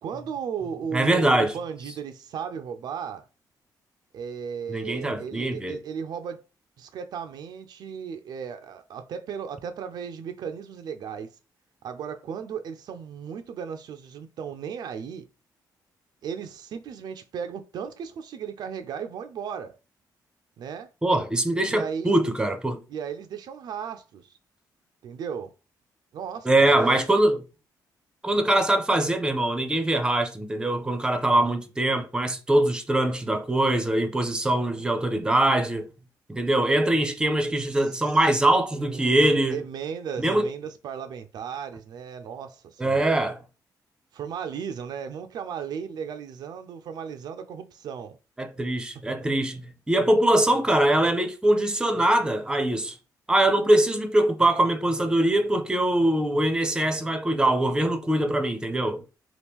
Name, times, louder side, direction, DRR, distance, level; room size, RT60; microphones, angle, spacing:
voice 1, 0.0-3.2 4.1-6.4 6.8-11.4 11.8-15.2 16.2-19.8 20.6-20.9 21.7-22.1 22.9-24.3 25.0-25.5 26.1-27.2 31.3-31.6 37.7-38.1 38.7-43.2 44.1-48.2 49.1-49.3, right 7 dB, 65° right, 0.4 m, -35 dB
voice 2, 0.9-1.5 4.7-5.8 21.0-22.8 26.5-27.4 28.2-35.9 36.3-39.6 40.2-40.5 42.8-43.4 48.4-53.0 53.3-59.0, right 1 dB, 10° right, 0.5 m, -23 dB
2.9 x 2.4 x 3.5 m
cardioid pair, 110°, 8 cm